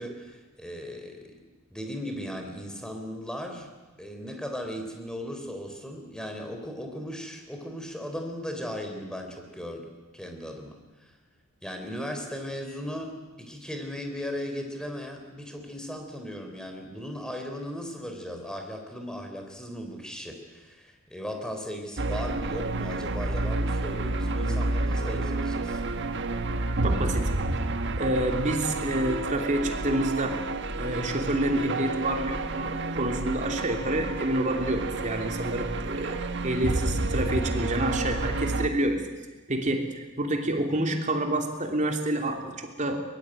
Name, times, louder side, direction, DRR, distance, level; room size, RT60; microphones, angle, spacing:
voice 1, 0.0-1.4 1.7-3.7 4.0-10.7 11.0-11.1 11.6-25.8, equal, 5° left, 4 dB, 4.0 m, -37 dB
sound 1, 22.0-38.7, right 2 dB, 55° right, 1.5 m, -30 dB
voice 2, 26.8-27.3 28.0-30.4 30.8-39.0 39.5-43.0, right 1 dB, 35° right, 4 dB, 3.1 m, -28 dB
22.5 x 22.5 x 9.2 m, 1.2 s
head